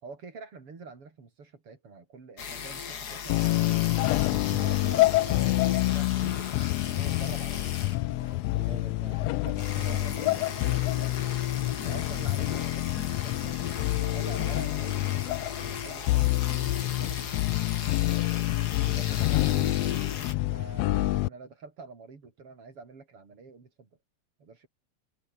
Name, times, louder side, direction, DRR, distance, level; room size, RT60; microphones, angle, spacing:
voice 1, 0.0-3.9 4.6-8.5 8.8-9.1 9.4-11.1 11.8-13.6 13.9-17.6 20.5-23.9 24.4-24.7, right 4 dB, 50° right, 4.5 m, -46 dB
sound 1, 2.4-20.3, left 7 dB, 40° left, 1.8 m, -38 dB
sound 2, 3.3-21.3, left 20 dB, 80° left, 1.5 m, -27 dB
voice 2, 4.2-4.7 8.5-10.4 18.9-19.7, equal, ahead, 1.6 m, -43 dB
omnidirectional pair, 3.3 m